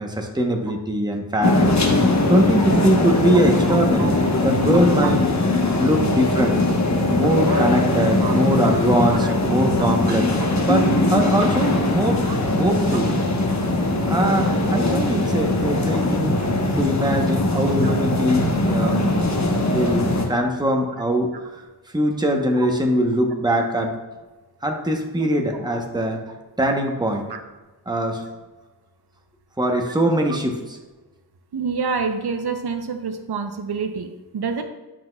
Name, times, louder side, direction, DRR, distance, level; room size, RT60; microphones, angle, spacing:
voice 1, 0.0-1.8 2.3-4.2 4.4-5.2 5.8-6.6 7.1-10.3 10.6-12.2 12.6-13.2 14.1-16.4 16.8-19.0 19.7-21.6 21.9-24.0 24.6-26.2 26.6-27.3 27.9-28.3 29.6-30.8, equal, 10° right, 2 dB, 0.9 m, -22 dB
sound 1, 1.4-20.3, left 2 dB, 45° left, 1.1 m, -20 dB
voice 2, 3.7-4.1 5.0-5.1 7.5-7.7 8.2-8.3 8.7-8.8 9.2-9.3 10.1-10.2 12.2-12.3 17.8-17.9 27.3-27.4 31.5-34.6, right 5 dB, 75° right, 6 dB, 0.7 m, -28 dB
10.0 x 5.8 x 2.3 m, 1.2 s
wide cardioid pair, 105°, 39 cm